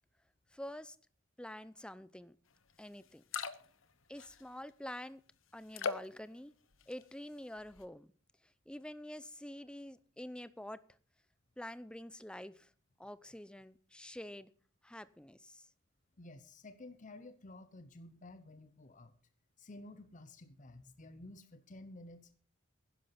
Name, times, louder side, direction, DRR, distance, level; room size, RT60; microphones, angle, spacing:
voice 1, 0.5-1.0 1.4-2.4 2.8-3.2 4.1-5.2 5.5-6.5 6.9-8.1 8.7-10.8 11.6-12.7 13.0-14.5 14.8-15.7, left 1 dB, 5° left, 0.5 m, -47 dB
sound 1, 2.7-2.8 3.1-3.8 4.2-4.7 5.7-6.2 6.7-7.2 7.6-7.8, left 5 dB, 80° left, 1.0 m, -39 dB
voice 2, 16.2-19.1 19.6-22.3, left 2 dB, 40° left, 0.9 m, -52 dB
11.0 x 11.0 x 5.8 m
head